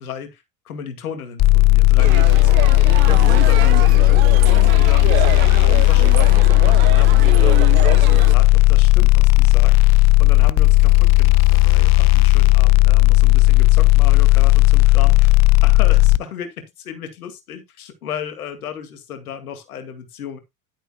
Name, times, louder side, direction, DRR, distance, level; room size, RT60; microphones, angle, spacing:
voice 1, 0.0-2.8 3.1-9.8 10.2-20.4, left 7 dB, 80° left, 2.4 m, -34 dB
sound 1, 1.4-16.2, left 21 dB, 40° left, 0.5 m, -13 dB
sound 2, 2.0-8.3, right 15 dB, 65° right, 1.2 m, -27 dB
11.0 x 8.9 x 2.3 m
hypercardioid pair, 80°, 43 cm